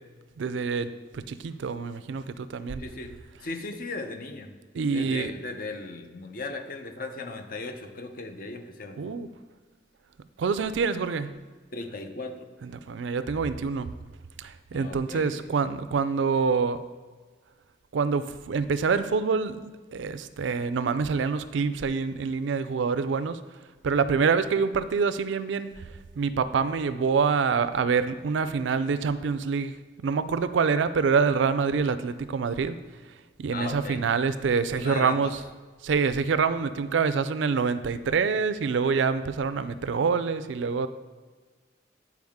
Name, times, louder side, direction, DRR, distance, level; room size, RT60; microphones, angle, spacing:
voice 1, 0.4-2.8 4.7-5.3 9.0-9.3 10.4-11.3 12.6-13.9 14.4-16.8 17.9-23.4 23.8-25.7 26.2-29.7 30.0-32.8 33.4-35.3 35.8-40.9, right 5 dB, 80° right, 13 dB, 0.4 m, -26 dB
voice 2, 2.8-3.1 3.4-4.5 4.9-9.2 11.7-12.5 14.7-15.5 33.5-34.0 34.7-35.3, left 3 dB, 50° left, 5 dB, 0.7 m, -37 dB
9.3 x 4.6 x 3.6 m, 1.4 s
head